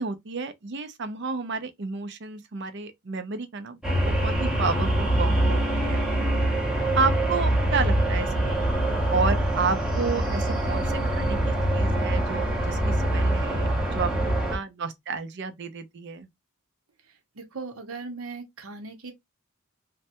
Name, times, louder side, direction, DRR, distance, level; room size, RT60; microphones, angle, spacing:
voice 1, 0.0-6.1 6.9-8.6 9.1-16.3, right 4 dB, 55° right, 0.6 m, -31 dB
sound 1, 3.8-14.6, right 1 dB, 5° right, 0.7 m, -24 dB
voice 2, 17.4-19.1, right 4 dB, 80° right, 0.9 m, -38 dB
3.2 x 2.2 x 2.8 m
head